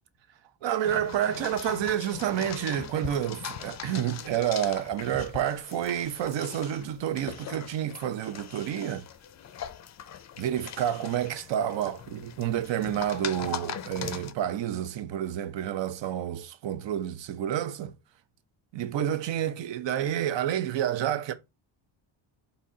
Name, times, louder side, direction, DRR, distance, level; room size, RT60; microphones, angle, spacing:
voice 1, 0.6-9.1 10.4-17.9 18.7-21.3, right 10 dB, 65° right, 0.7 m, -29 dB
sound 1, 0.8-14.3, left 9 dB, 40° left, 0.4 m, -41 dB
4.1 x 2.8 x 4.1 m
cardioid pair, 140°, 47 cm